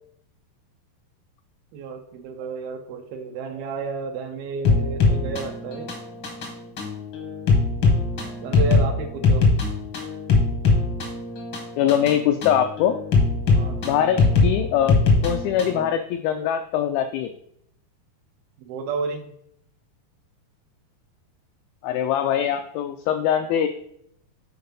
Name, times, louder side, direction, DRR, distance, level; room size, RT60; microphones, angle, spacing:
voice 1, 1.7-6.0 8.4-9.5 13.6-13.8 18.6-19.3, right 4 dB, 80° right, 5 dB, 2.3 m, -31 dB
sound 1, 4.6-15.9, left 3 dB, 70° left, 1.2 m, -21 dB
voice 2, 11.8-13.0 13.8-15.0 15.2-17.3 21.8-23.7, left 9 dB, 85° left, 7 dB, 2.1 m, -22 dB
8.0 x 4.7 x 5.2 m, 0.71 s
omnidirectional pair, 4.8 m